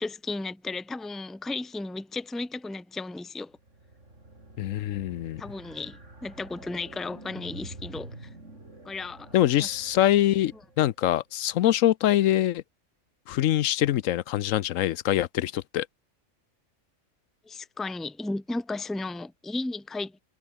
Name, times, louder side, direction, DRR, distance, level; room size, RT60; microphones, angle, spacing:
voice 1, 0.0-3.6 5.4-8.3 8.8-9.7 17.4-20.2, left 3 dB, ahead, 0.7 m, -34 dB
sound 1, 3.5-11.0, right 2 dB, 65° right, 5.7 m, -47 dB
voice 2, 4.6-5.4 9.3-12.6 13.3-15.9, left 13 dB, 75° left, 1.0 m, -24 dB
omnidirectional pair, 1.4 m